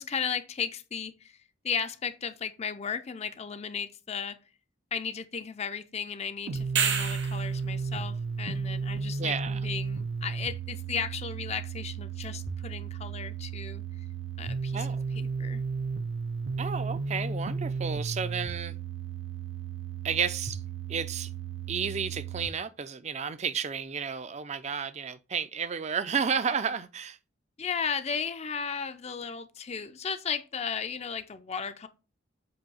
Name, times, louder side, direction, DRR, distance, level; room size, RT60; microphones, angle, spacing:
voice 1, 0.0-1.4 1.6-4.4 4.9-13.8 14.4-14.9 15.1-15.6 27.6-31.9, left 6 dB, 35° left, 0.5 m, -35 dB
sound 1, 6.5-22.5, right 5 dB, 85° right, 0.5 m, -34 dB
sound 2, 6.6-7.5 12.2-12.3, right 6 dB, 65° right, 1.1 m, -28 dB
voice 2, 9.2-9.6 14.7-15.0 16.6-18.7 20.0-20.6 20.9-21.3 21.7-27.2, right 6 dB, 35° right, 0.4 m, -32 dB
7.7 x 2.8 x 5.5 m
head